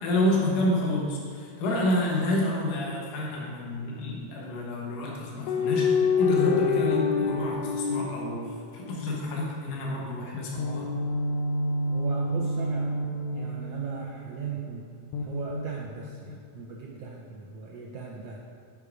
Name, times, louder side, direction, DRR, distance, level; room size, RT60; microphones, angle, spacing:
voice 1, 0.0-8.4 8.7-10.9, left 1 dB, 70° left, -3 dB, 2.7 m, -29 dB
sound 1, 5.5-9.1 10.6-14.3 15.1-16.4, left 3 dB, 90° left, 1.6 m, -27 dB
voice 2, 11.9-12.9 13.3-14.9 15.2-18.4, right 5 dB, 75° right, -3 dB, 1.5 m, -37 dB
8.2 x 5.4 x 4.9 m, 2.2 s
omnidirectional pair, 3.8 m